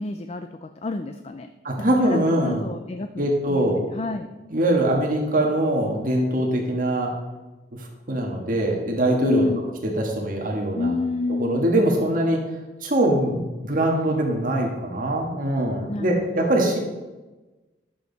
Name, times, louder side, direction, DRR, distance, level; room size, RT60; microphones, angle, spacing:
voice 1, 0.0-1.5 2.0-4.3 9.2-9.6 10.8-11.7 15.9-16.5, left 2 dB, 35° left, 8 dB, 0.4 m, -29 dB
voice 2, 1.6-2.6 3.2-3.8 4.5-7.2 7.7-9.5 9.8-10.9 11.4-12.4 12.8-16.8, right 1 dB, 50° right, 0 dB, 1.6 m, -22 dB
11.0 x 7.2 x 4.0 m, 1.1 s
head